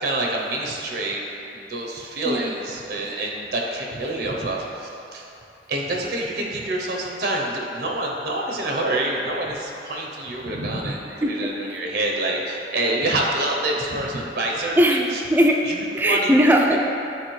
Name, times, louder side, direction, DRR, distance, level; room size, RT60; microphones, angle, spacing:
voice 1, 0.0-1.2 1.5-5.3 5.7-14.8 15.1-15.2 15.7-16.3 16.7-16.8, right 2 dB, 65° right, -1 dB, 0.7 m, -27 dB
voice 2, 11.2-11.5 14.8-15.6 15.9-16.8, equal, 10° right, 1 dB, 0.4 m, -19 dB
9.2 x 4.0 x 3.1 m, 2.9 s
head